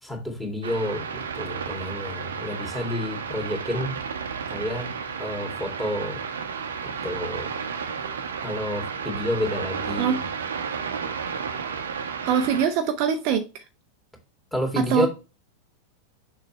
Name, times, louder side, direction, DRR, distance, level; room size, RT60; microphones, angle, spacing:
voice 1, 0.0-4.0 4.5-4.9 5.2-6.2 6.8-7.6 8.4-10.2 14.5-15.1, left 1 dB, 5° left, 2.3 m, -30 dB
sound 1, 0.6-12.7, right 6 dB, 65° right, 0.8 m, -32 dB
voice 2, 12.2-13.4 14.8-15.1, right 7 dB, 45° right, 0.6 m, -23 dB
6.7 x 5.5 x 3.1 m
figure-of-eight pair, 90°, 0 cm